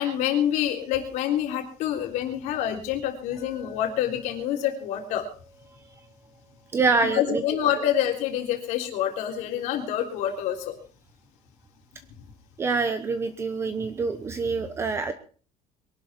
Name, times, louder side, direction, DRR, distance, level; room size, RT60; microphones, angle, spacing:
voice 1, 0.0-5.3 7.1-10.7, left 10 dB, 65° left, 3 dB, 3.5 m, -27 dB
Chink clink, 3.4-7.4, right 1 dB, 40° left, 3.0 m, -50 dB
voice 2, 6.7-7.4 12.6-15.1, right 4 dB, 20° right, 10 dB, 0.9 m, -25 dB
22.5 x 12.0 x 4.5 m, 0.42 s
cardioid pair, 175°, 13 cm